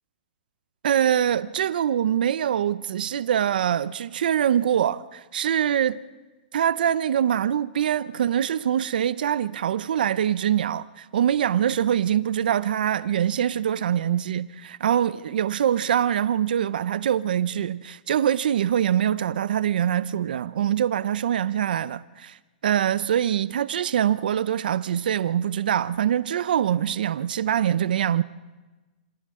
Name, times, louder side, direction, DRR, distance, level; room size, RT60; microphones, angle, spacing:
voice 1, 0.8-6.0 6.5-22.4 22.6-28.2, right 9 dB, 75° right, 0.6 m, -24 dB
28.0 x 27.5 x 3.7 m
hypercardioid pair, 175°, 5 cm